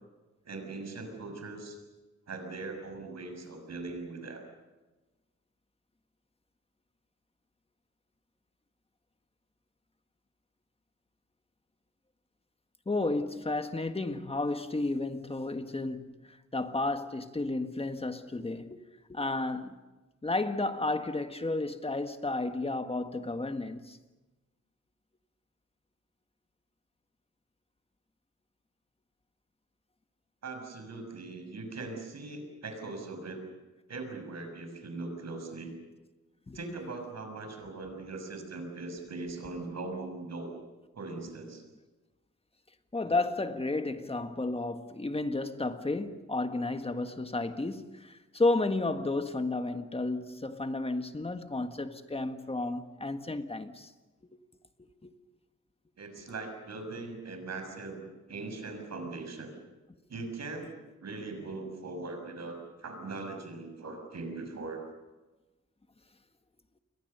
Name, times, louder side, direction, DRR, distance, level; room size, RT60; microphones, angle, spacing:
voice 1, 0.4-1.8 2.3-4.4 30.4-33.4 33.9-35.8 36.5-40.6 40.9-41.6 43.0-43.1 56.0-58.0 58.3-59.5 60.1-64.8, right 3 dB, 65° right, 6.5 m, -40 dB
voice 2, 12.8-18.8 19.1-19.8 20.2-24.0 36.5-36.6 42.9-53.9 55.0-55.1, left 2 dB, 20° left, 1.6 m, -32 dB
29.5 x 23.0 x 6.8 m
wide cardioid pair, 135°, 29 cm